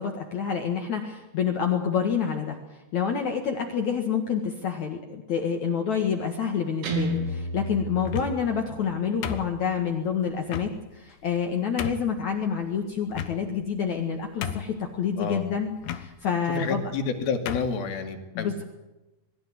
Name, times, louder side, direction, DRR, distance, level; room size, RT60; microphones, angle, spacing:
voice 1, 0.0-16.8 18.3-18.6, left 7 dB, 55° left, 3 dB, 2.7 m, -28 dB
Guitar, 6.8-8.9, right 1 dB, 80° right, 5.1 m, -31 dB
sound 1, 8.0-8.5 9.2-9.9 10.5-10.7 11.3-11.4 11.8-12.1 13.1-13.7 14.0-14.1 14.4-14.9 15.8-16.1 16.9-17.1 17.5-17.8, left 9 dB, 85° left, 3.4 m, -33 dB
voice 2, 16.5-18.6, left 5 dB, 70° left, 6 dB, 4.2 m, -29 dB
23.0 x 14.5 x 9.6 m, 1.0 s
omnidirectional pair, 4.6 m